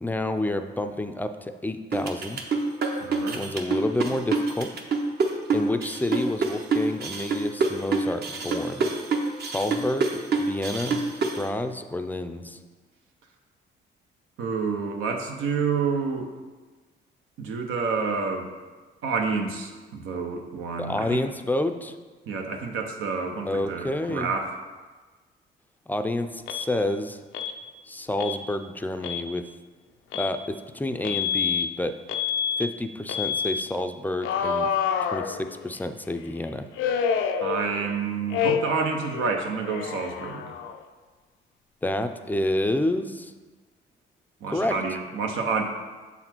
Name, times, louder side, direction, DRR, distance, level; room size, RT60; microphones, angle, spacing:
voice 1, 0.0-2.4 3.3-4.7 5.5-8.9 9.4-12.6 20.8-22.0 23.5-24.3 25.9-27.2 27.9-29.5 30.1-32.0 32.6-34.7 35.0-36.7 41.8-43.3 44.5-44.8, left 1 dB, 10° left, 8 dB, 0.4 m, -29 dB
sound 1, 1.9-11.4, right 4 dB, 55° right, 0.9 m, -26 dB
voice 2, 3.0-3.5 14.4-16.3 17.4-18.5 19.0-21.3 22.3-24.5 37.4-40.5 44.4-45.6, right 5 dB, 85° right, 3 dB, 0.8 m, -28 dB
Alarm, 26.5-26.7 27.3-27.6 28.2-28.4 28.9-29.3 30.1-30.3 31.0-31.7 32.1-32.7 33.1-33.6 34.2-35.8 36.8-38.0 38.3-38.9 39.1-40.8, left 7 dB, 85° left, 0.5 m, -27 dB
7.0 x 4.1 x 4.4 m, 1.3 s
cardioid pair, 90°, 20 cm